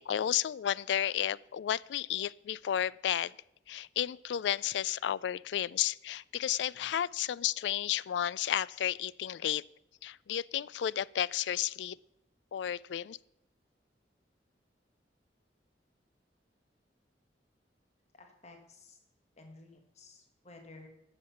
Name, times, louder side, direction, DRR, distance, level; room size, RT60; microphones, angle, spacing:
voice 1, 0.0-3.3 3.7-9.6 10.0-12.0 12.5-13.2, left 10 dB, 75° left, 21 dB, 0.3 m, -32 dB
voice 2, 18.2-19.0 19.4-20.9, left 2 dB, 40° left, 4 dB, 1.5 m, -54 dB
12.5 x 6.8 x 5.7 m, 0.81 s
head